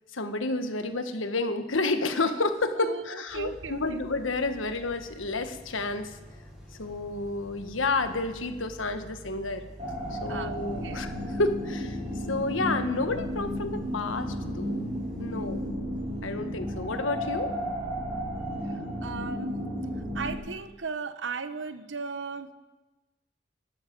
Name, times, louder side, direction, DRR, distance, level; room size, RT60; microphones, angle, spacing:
voice 1, 0.1-6.1 6.8-9.7 10.1-12.0 12.3-15.9 16.2-17.5, left 3 dB, 85° left, 8 dB, 1.2 m, -30 dB
voice 2, 2.8-4.0 10.3-10.6 10.8-11.0 19.0-19.6 20.1-22.5, right 4 dB, 70° right, 11 dB, 0.9 m, -36 dB
sound 1, 3.3-15.7, equal, 5° right, 4.6 m, -50 dB
sound 2, 9.8-20.3, equal, 35° right, 4.9 m, -33 dB
13.5 x 12.5 x 5.3 m, 1.1 s
head